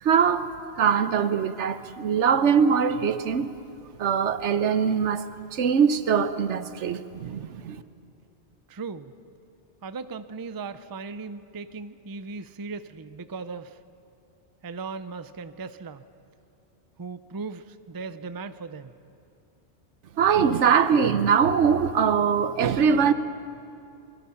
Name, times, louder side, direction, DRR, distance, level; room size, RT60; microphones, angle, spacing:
voice 1, 0.0-0.5 0.8-3.6 4.0-5.2 5.5-7.8 20.2-23.1, right 7 dB, 80° right, 12 dB, 1.1 m, -22 dB
voice 2, 8.7-9.1 9.8-13.7 14.6-16.0 17.0-18.9, right 4 dB, 30° right, 12 dB, 0.4 m, -37 dB
25.5 x 22.5 x 5.8 m, 2.6 s
omnidirectional pair, 1.2 m